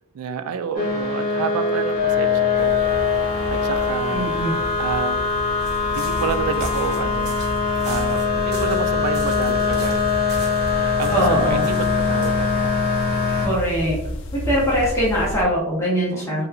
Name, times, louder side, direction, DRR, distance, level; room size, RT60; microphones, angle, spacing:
voice 1, 0.1-2.8 3.5-4.3 4.8-5.2 5.9-7.4 7.8-10.2 10.6-12.8 13.1-13.5 16.1-16.5, right 6 dB, 85° right, 10 dB, 0.3 m, -29 dB
sound 1, 0.7-13.5, left 5 dB, 90° left, 1.4 m, -22 dB
sound 2, 2.5-15.4, equal, 55° left, 0.4 m, -34 dB
voice 2, 4.1-4.5 11.1-11.6 13.4-14.0 14.3-16.5, equal, 10° left, -6 dB, 0.7 m, -22 dB
sound 3, 5.6-12.3, equal, 45° right, 0.9 m, -34 dB
3.4 x 2.9 x 2.4 m, 0.87 s
head